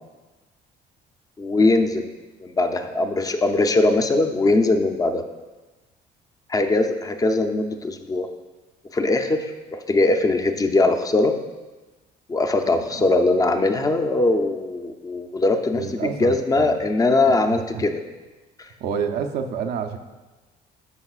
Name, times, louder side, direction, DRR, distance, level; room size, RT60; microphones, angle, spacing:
voice 1, 1.4-2.1 2.4-5.2 6.5-8.3 8.9-11.3 12.3-18.0 18.6-18.7, left 2 dB, 20° left, 7 dB, 0.6 m, -21 dB
voice 2, 12.7-13.0 15.7-16.9 17.2-17.8 18.8-20.0, right 6 dB, 75° right, 5 dB, 0.7 m, -29 dB
12.0 x 5.3 x 2.4 m, 1.2 s
cardioid pair, 110°, 17 cm